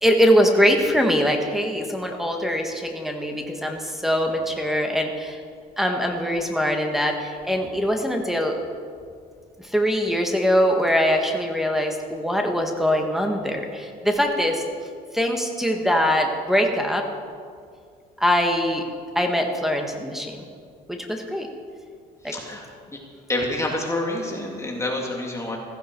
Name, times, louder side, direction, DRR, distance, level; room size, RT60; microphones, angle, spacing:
voice 1, 0.0-5.4 5.8-8.6 9.6-14.6 15.1-17.1 18.2-18.9 19.1-20.5 20.9-21.5 22.2-22.3, equal, ahead, 3 dB, 1.7 m, -22 dB
voice 2, 22.2-22.7 23.3-25.6, left 1 dB, 15° left, -1 dB, 2.3 m, -27 dB
15.5 x 15.0 x 4.6 m, 2.2 s
cardioid pair, 110°, 17 cm